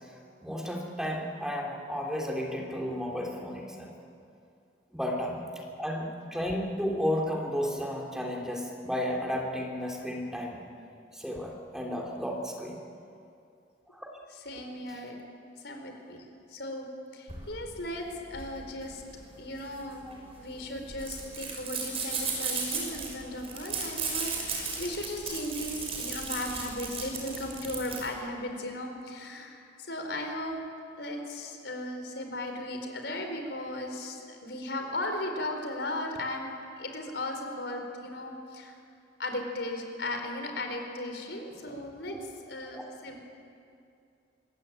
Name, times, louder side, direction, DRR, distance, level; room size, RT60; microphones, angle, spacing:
voice 1, 0.4-3.9 4.9-5.4 5.8-10.6 11.1-12.8 13.9-14.1 20.0-20.2 41.7-41.8 42.1-42.2 42.7-42.8, equal, 5° right, -1 dB, 2.9 m, -33 dB
voice 2, 14.4-15.2 15.6-16.9 17.1-19.0 19.4-20.0 20.4-30.6 31.0-36.5 36.8-38.8 39.2-43.2, left 1 dB, 75° left, 4 dB, 4.5 m, -36 dB
sound 1, 17.3-28.1, right 4 dB, 35° right, 6.0 m, -36 dB
25.5 x 22.5 x 9.0 m, 2.5 s
head